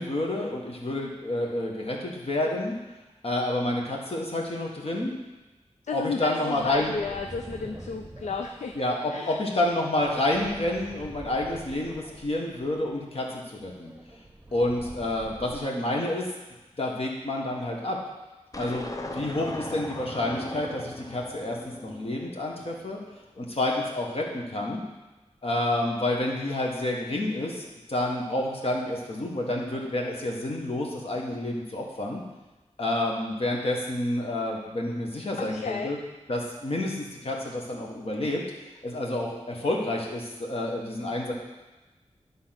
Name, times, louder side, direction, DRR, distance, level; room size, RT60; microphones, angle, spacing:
voice 1, 0.0-2.7 3.2-5.1 5.9-6.9 8.7-13.9 14.5-16.3 16.8-18.0 18.6-21.6 21.8-23.0 23.4-24.8 25.4-32.2 32.8-36.0 36.3-38.4 38.8-41.3, left 1 dB, 55° left, -1 dB, 1.5 m, -29 dB
voice 2, 5.9-8.8 9.1-9.4 35.4-35.9, left 5 dB, 80° left, 4 dB, 0.4 m, -33 dB
sound 1, 6.5-15.6, right 1 dB, 15° right, 0.9 m, -46 dB
sound 2, 18.5-22.9, left 1 dB, 30° left, 0.7 m, -38 dB
9.8 x 3.8 x 5.9 m, 1.1 s
wide cardioid pair, 90°, 12 cm